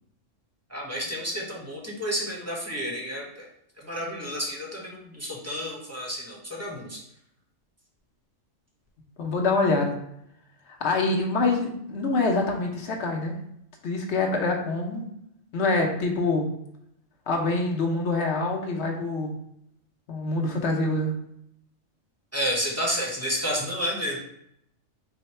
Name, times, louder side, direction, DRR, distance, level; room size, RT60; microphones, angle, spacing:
voice 1, 0.7-3.5 3.8-7.0 22.3-24.2, equal, 15° right, -2 dB, 0.7 m, -30 dB
voice 2, 9.2-9.9 10.7-13.3 13.8-15.0 15.5-16.5 17.3-19.3 20.1-21.1, left 3 dB, 60° left, 1 dB, 1.0 m, -25 dB
4.6 x 2.2 x 4.2 m, 0.76 s
omnidirectional pair, 1.3 m